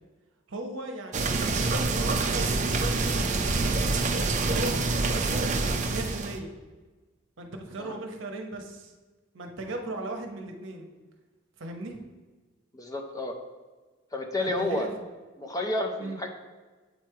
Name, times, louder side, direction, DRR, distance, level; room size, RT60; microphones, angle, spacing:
voice 1, 0.5-3.6 4.2-5.5 5.9-6.5 7.4-8.9 9.3-10.9 11.6-12.0 14.4-14.9 16.0-16.2, right 2 dB, 60° right, 3 dB, 0.8 m, -37 dB
sound 1, 1.1-6.4, right 3 dB, 35° right, 0.5 m, -26 dB
voice 2, 12.7-13.4 14.1-14.9 15.4-16.3, left 1 dB, 15° left, 3 dB, 0.5 m, -30 dB
8.0 x 3.2 x 4.6 m, 1.3 s
head